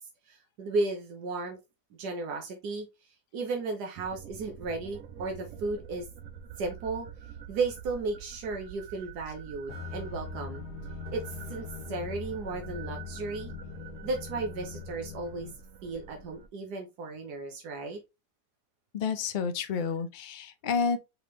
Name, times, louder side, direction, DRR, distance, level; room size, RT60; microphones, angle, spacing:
voice 1, 0.3-1.6 2.0-2.9 3.3-6.1 6.6-7.1 7.5-10.6 11.1-13.5 14.0-15.5 15.8-18.0, right 3 dB, 90° right, 1.5 m, -34 dB
sound 1, 4.0-16.5, right 7 dB, 65° right, 0.9 m, -46 dB
sound 2, 9.7-15.5, left 6 dB, 85° left, 1.4 m, -42 dB
voice 2, 18.9-21.0, left 5 dB, 65° left, 0.4 m, -30 dB
4.8 x 3.5 x 3.1 m
omnidirectional pair, 1.7 m